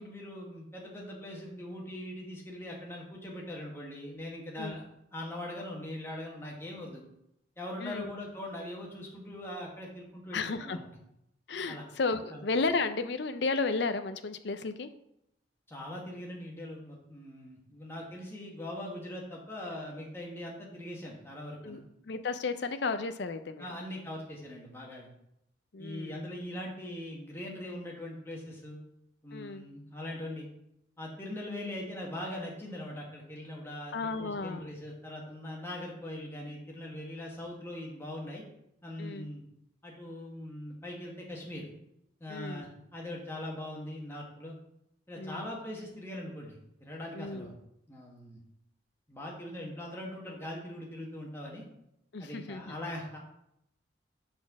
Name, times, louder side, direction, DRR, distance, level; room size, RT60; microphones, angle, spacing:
voice 1, 0.0-4.8 5.1-7.0 7.6-10.9 11.7-11.8 12.3-12.4 15.7-21.8 23.6-25.1 25.8-28.8 29.2-30.5 31.0-38.4 38.8-39.4 39.8-41.7 42.2-44.5 45.1-47.6 47.9-48.4 49.1-51.7 52.2-53.2, left 1 dB, 10° left, -2 dB, 1.4 m, -41 dB
voice 2, 10.3-10.8 11.5-14.9 21.6-23.7 25.7-26.2 29.3-29.6 33.9-34.7 39.0-39.3 42.3-42.7 45.2-45.5 47.1-47.5 52.1-52.7, left 4 dB, 60° left, 10 dB, 0.5 m, -33 dB
6.1 x 4.3 x 5.9 m, 0.81 s
head